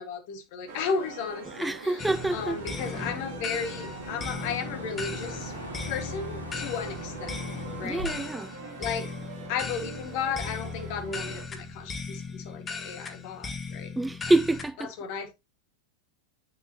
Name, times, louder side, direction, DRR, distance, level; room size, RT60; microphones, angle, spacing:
voice 1, 0.0-1.9 2.3-5.5 5.8-7.4 7.8-8.0 8.8-9.1 9.5-13.9 15.0-15.3, left 6 dB, 45° left, 1.9 m, -34 dB
sound 1, 0.7-11.5, right 5 dB, 55° right, 2.7 m, -44 dB
voice 2, 1.5-3.1 7.8-8.5 14.0-14.9, right 2 dB, 5° right, 0.4 m, -27 dB
sound 2, 2.0-8.3, equal, 85° left, 2.7 m, -41 dB
sound 3, 2.0-14.7, left 4 dB, 15° left, 1.4 m, -38 dB
8.7 x 7.0 x 2.9 m
figure-of-eight pair, 90°, 0 cm